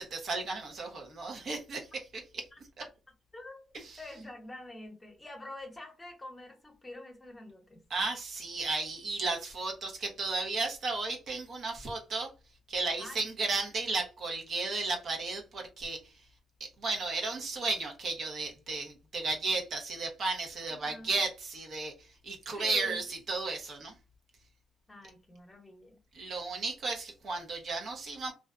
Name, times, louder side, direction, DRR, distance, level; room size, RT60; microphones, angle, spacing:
voice 1, 0.0-2.5 3.7-4.0 7.9-12.3 12.7-16.3 16.6-23.9 26.1-28.3, right 3 dB, 55° right, 0.9 m, -34 dB
voice 2, 3.3-7.8 13.0-13.2 20.7-21.2 22.6-23.0 24.9-26.0, left 2 dB, 20° left, 0.9 m, -46 dB
2.5 x 2.2 x 2.4 m
cardioid pair, 90°, 0 cm